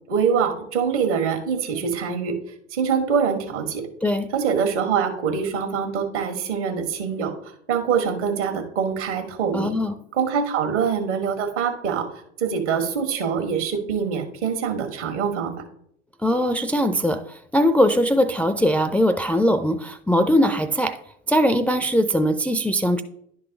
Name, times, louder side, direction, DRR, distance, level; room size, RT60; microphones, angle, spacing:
voice 1, 0.1-2.3 2.7-3.8 4.3-9.8 10.1-12.1 12.4-15.5, right 6 dB, 70° right, 5 dB, 1.7 m, -24 dB
voice 2, 9.5-9.9 16.2-21.0 21.3-23.0, equal, 5° left, 7 dB, 0.4 m, -21 dB
11.0 x 4.0 x 3.9 m, 0.68 s
figure-of-eight pair, 70°, 36 cm